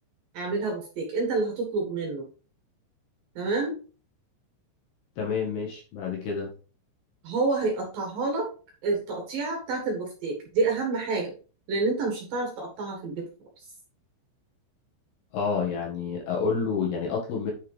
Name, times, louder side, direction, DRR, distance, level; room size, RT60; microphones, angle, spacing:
voice 1, 0.3-2.3 3.4-3.7 7.2-8.5 8.8-11.3 11.7-13.3, right 3 dB, 60° right, 1 dB, 2.7 m, -28 dB
voice 2, 5.2-6.5 15.3-17.5, left 5 dB, 60° left, 0 dB, 3.3 m, -29 dB
9.5 x 6.4 x 3.3 m, 0.37 s
omnidirectional pair, 5.8 m